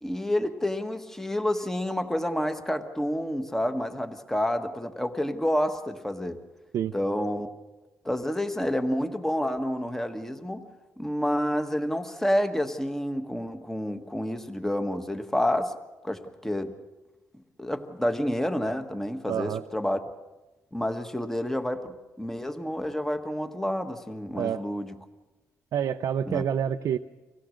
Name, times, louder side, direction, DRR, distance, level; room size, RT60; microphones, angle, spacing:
voice 1, 0.0-6.4 6.9-7.5 8.0-10.6 11.0-15.7 16.0-16.7 17.6-20.0 20.7-24.9 26.2-26.4, left 1 dB, 5° left, 7 dB, 1.4 m, -29 dB
voice 2, 19.3-19.6 24.3-24.6 25.7-27.0, right 9 dB, 70° right, 6 dB, 0.6 m, -27 dB
25.0 x 17.0 x 6.4 m, 1.1 s
cardioid pair, 110°, 6 cm